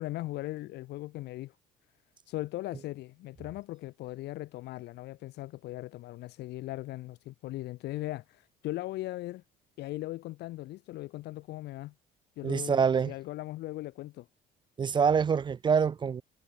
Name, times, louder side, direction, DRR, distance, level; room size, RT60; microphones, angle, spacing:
voice 1, 0.0-1.5 2.3-9.4 9.8-11.9 12.4-14.3, left 17 dB, 80° left, 2.5 m, -39 dB
voice 2, 12.4-13.1 14.8-16.2, right 6 dB, 30° right, 0.4 m, -25 dB
cardioid pair, 110°, 17 cm